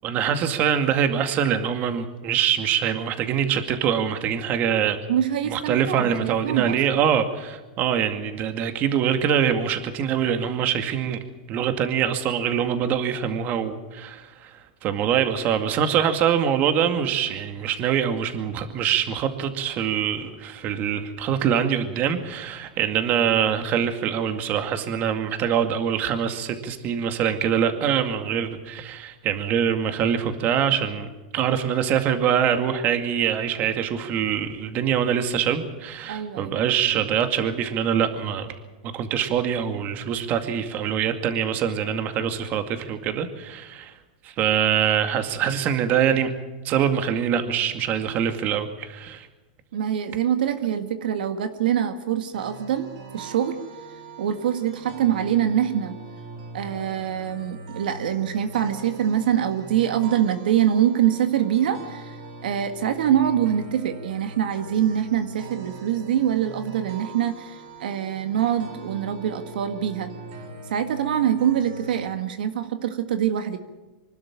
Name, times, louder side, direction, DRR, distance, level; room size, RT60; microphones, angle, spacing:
voice 1, 0.0-5.0 5.4-11.2 11.5-38.5 38.8-43.9 44.2-46.3 46.6-49.3, right 8 dB, 35° right, 8 dB, 2.2 m, -24 dB
voice 2, 5.1-6.8 36.1-36.5 49.7-52.9 53.1-53.6 54.2-55.9 56.5-62.2 62.4-70.1 70.7-73.6, right 10 dB, 80° right, 8 dB, 1.7 m, -24 dB
sound 1, 52.3-72.1, right 3 dB, 60° right, 6.0 m, -41 dB
25.0 x 12.5 x 8.8 m, 1.2 s
supercardioid pair, 140°, 5 cm